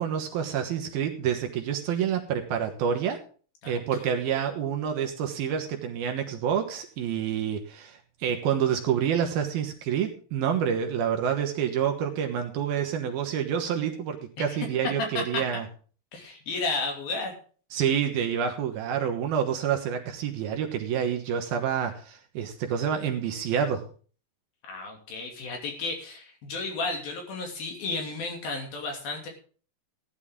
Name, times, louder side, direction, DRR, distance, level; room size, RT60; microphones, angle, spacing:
voice 1, 0.0-3.2 3.7-15.6 17.7-23.8, right 8 dB, 70° right, 4 dB, 2.8 m, -28 dB
voice 2, 16.1-17.3 24.6-29.3, left 3 dB, 60° left, 2 dB, 4.3 m, -33 dB
16.0 x 10.5 x 3.7 m, 0.41 s
omnidirectional pair, 5.0 m